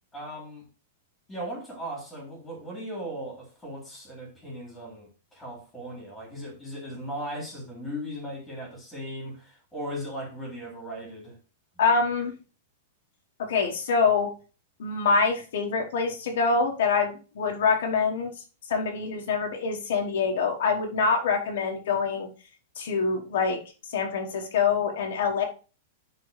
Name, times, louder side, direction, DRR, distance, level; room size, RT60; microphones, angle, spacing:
voice 1, 0.1-0.6 1.3-11.4, equal, 5° left, 3.0 m, -37 dB
voice 2, 11.8-12.3 13.5-14.3 14.8-18.3 18.7-22.3 22.8-23.6 23.9-25.4, left 5 dB, 65° left, 1.3 m, -25 dB
10.5 x 3.9 x 3.2 m
supercardioid pair, 170°, 0 cm